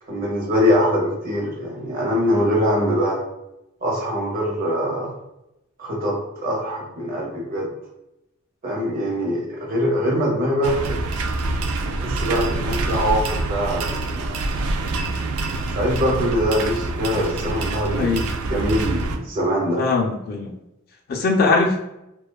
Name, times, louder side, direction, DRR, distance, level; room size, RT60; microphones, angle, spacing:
voice 1, 0.1-3.2 3.8-5.1 5.8-7.7 8.6-11.0 12.0-14.4 15.7-18.2 18.5-19.8, equal, 40° right, -2 dB, 0.6 m, -23 dB
sound 1, 10.6-19.2, right 2 dB, 90° right, 0.3 m, -26 dB
voice 2, 17.9-18.2 19.8-20.5 21.1-21.8, left 3 dB, 45° left, 1 dB, 0.3 m, -20 dB
2.6 x 2.2 x 2.2 m, 0.88 s
head